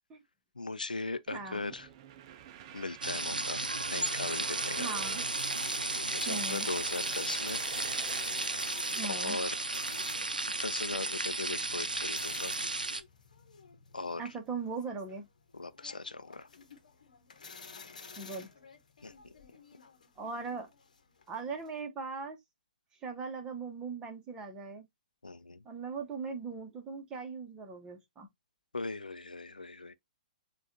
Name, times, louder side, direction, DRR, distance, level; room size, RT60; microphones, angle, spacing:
voice 1, 0.6-1.9 2.7-3.6 3.9-4.9 6.1-7.6 8.5-8.6 9.1-9.5 10.5-12.6 13.9-14.3 15.5-16.5 19.0-19.1 25.2-25.6 28.7-29.9, left 3 dB, 75° left, 0.5 m, -38 dB
voice 2, 1.3-1.6 4.8-5.3 6.3-6.7 8.9-9.4 14.2-15.3 18.2-18.5 20.2-20.7 21.3-22.4 23.0-24.9 25.6-28.3, right 4 dB, 15° right, 1.2 m, -39 dB
sound 1, 1.3-11.0, right 10 dB, 35° right, 0.6 m, -48 dB
sound 2, 3.0-13.0, right 2 dB, 80° right, 0.6 m, -34 dB
sound 3, 3.9-21.8, left 5 dB, 60° left, 1.0 m, -52 dB
6.9 x 2.5 x 2.8 m
figure-of-eight pair, 120°, 5 cm